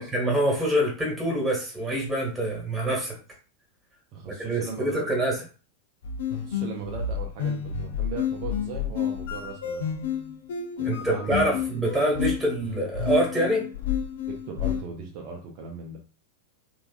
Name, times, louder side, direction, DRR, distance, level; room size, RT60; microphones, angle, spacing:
voice 1, 0.0-3.2 4.3-5.4 10.8-13.6, right 1 dB, 10° right, -1 dB, 1.4 m, -25 dB
voice 2, 4.1-5.0 6.3-9.8 10.8-11.4 11.7-11.8 14.3-16.0, right 5 dB, 40° right, 1 dB, 0.5 m, -38 dB
sound 1, 6.0-14.8, left 7 dB, 60° left, 0.5 m, -30 dB
3.2 x 2.5 x 2.4 m, 0.37 s
figure-of-eight pair, 90°, 0 cm